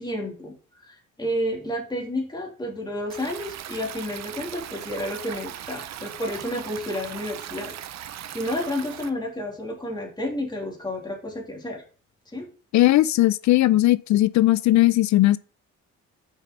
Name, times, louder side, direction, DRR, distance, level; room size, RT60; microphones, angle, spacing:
voice 1, 0.0-7.7 8.3-11.8 12.3-12.5, left 1 dB, 15° left, 2.9 m, -31 dB
Stream, 3.1-9.1, right 11 dB, 60° right, 0.8 m, -38 dB
voice 2, 12.7-15.4, left 16 dB, 70° left, 0.5 m, -18 dB
7.1 x 5.8 x 5.3 m
cardioid pair, 90°, 30 cm